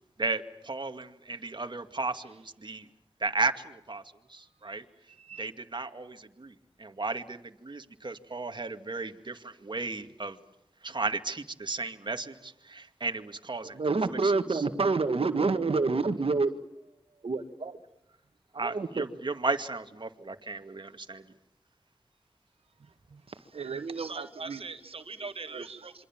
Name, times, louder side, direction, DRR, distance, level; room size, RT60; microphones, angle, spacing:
voice 1, 0.2-2.9 3.2-4.0 4.3-4.8 5.4-10.4 10.8-13.8 14.1-14.6 18.5-21.3, right 3 dB, 50° right, 7 dB, 2.2 m, -34 dB
voice 2, 5.1-5.5 22.8-23.2 23.5-24.8 25.2-25.8, right 5 dB, 85° right, 9 dB, 1.3 m, -40 dB
voice 3, 13.6-16.5 17.2-17.8 18.5-19.0 23.3-23.4 24.0-25.9, right 4 dB, 65° right, 9 dB, 2.0 m, -29 dB
27.5 x 25.0 x 7.4 m, 0.83 s
cardioid pair, 45°, 10 cm